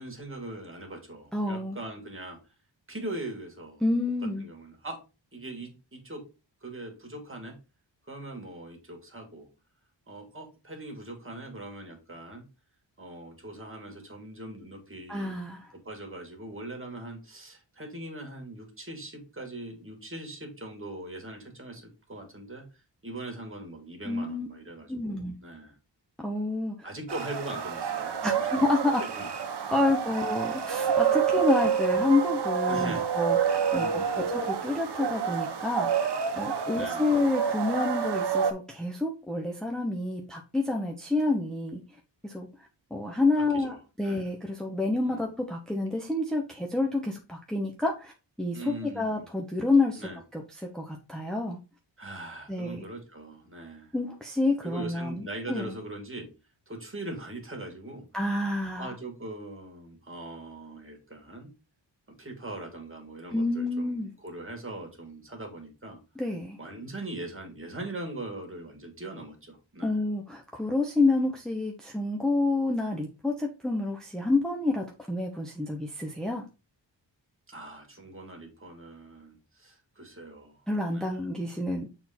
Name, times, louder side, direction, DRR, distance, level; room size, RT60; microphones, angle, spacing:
voice 1, 0.0-2.4 2.9-3.8 4.4-5.0 5.3-6.2 6.6-7.6 8.1-9.5 10.1-12.4 13.0-15.4 15.8-25.7 26.8-28.5 29.0-29.3 31.5-31.6 32.7-33.1 33.7-34.3 36.7-37.1 43.4-43.8 44.0-44.3 45.0-45.3 48.5-49.3 50.0-50.2 52.0-53.9 54.6-56.3 56.7-58.1 58.8-61.5 62.2-66.0 66.6-70.0 71.2-71.3 77.5-81.2, right 1 dB, 30° right, 2 dB, 2.2 m, -41 dB
voice 2, 1.3-1.8 3.8-4.5 15.1-15.7 24.0-24.5 24.9-25.4 26.2-26.7 28.2-29.0 29.7-36.1 36.4-41.8 42.2-42.5 42.9-48.1 48.4-51.6 52.5-52.8 53.9-55.7 58.1-58.9 63.3-64.1 66.2-66.6 69.8-76.4 80.7-81.9, left 2 dB, ahead, 1 dB, 0.9 m, -28 dB
sound 1, 27.1-38.5, right 7 dB, 60° right, 1.0 m, -28 dB
6.7 x 3.9 x 4.3 m, 0.30 s
wide cardioid pair, 100°, 45 cm